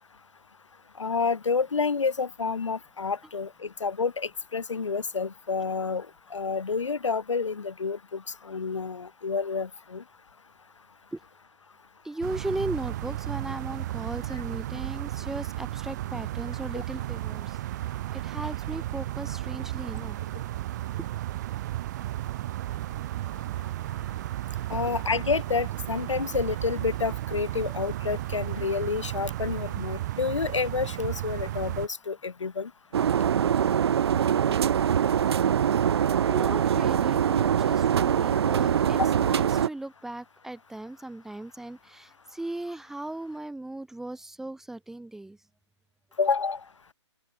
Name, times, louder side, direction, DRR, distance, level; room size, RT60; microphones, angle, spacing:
voice 1, 1.0-6.1 6.3-10.0 16.7-16.8 24.7-32.7 46.2-46.6, left 5 dB, 75° left, 2.1 m, -29 dB
voice 2, 12.0-17.6 18.1-20.2 35.9-45.4, right 2 dB, 5° right, 1.0 m, -37 dB
sound 1, 12.2-31.9, right 15 dB, 35° right, 2.4 m, -34 dB
sound 2, 32.9-39.7, right 8 dB, 55° right, 0.5 m, -23 dB
open air
figure-of-eight pair, 140°, 16 cm